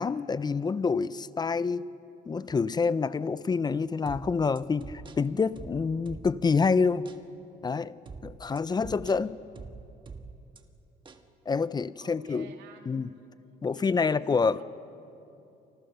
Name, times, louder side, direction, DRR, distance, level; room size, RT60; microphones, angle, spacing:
voice 1, 0.0-1.8 2.3-7.0 7.6-8.0 8.2-9.4 11.5-12.5 12.9-13.1 13.6-14.6, left 5 dB, 25° left, 0.6 m, -27 dB
sound 1, 4.1-6.6 7.1-7.2 8.1-10.6 11.1-11.3, right 4 dB, 30° right, 1.6 m, -45 dB
voice 2, 12.0-13.0 13.7-14.6, right 6 dB, 85° right, 3.4 m, -50 dB
29.0 x 25.5 x 6.9 m
cardioid pair, 110°, 17 cm